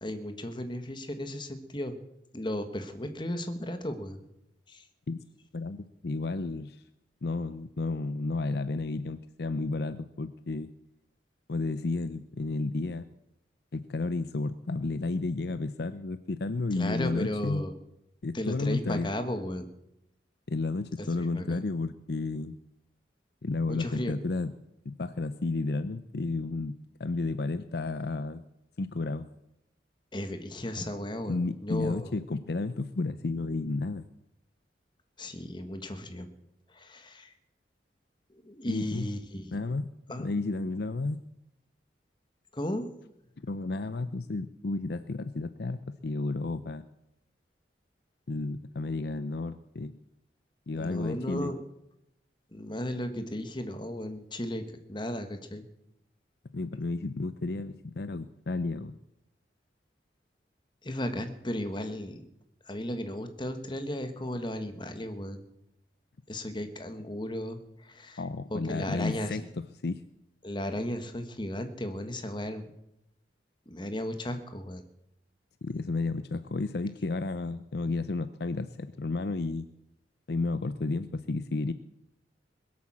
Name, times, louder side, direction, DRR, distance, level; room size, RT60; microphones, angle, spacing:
voice 1, 0.0-1.9 2.3-4.2 4.7-4.8 16.8-17.7 18.3-19.7 21.0-21.6 23.7-24.1 30.1-32.1 35.2-36.3 36.7-37.3 38.4-39.6 40.1-40.3 42.5-42.9 50.7-51.6 52.5-55.6 60.8-62.2 62.7-65.4 66.3-68.2 68.5-69.5 70.4-72.7 73.7-74.8, left 1 dB, 25° left, 8 dB, 1.5 m, -35 dB
voice 2, 5.5-6.8 7.2-10.7 11.5-13.1 13.7-17.6 18.2-19.1 20.5-22.6 23.4-24.5 24.9-28.4 28.8-29.3 31.3-34.0 38.7-39.1 39.5-41.2 43.4-46.9 48.3-50.0 50.7-51.5 56.5-59.0 68.2-70.0 75.6-79.7 80.3-81.7, left 3 dB, 60° left, 13 dB, 0.6 m, -32 dB
21.0 x 8.6 x 7.4 m, 0.84 s
head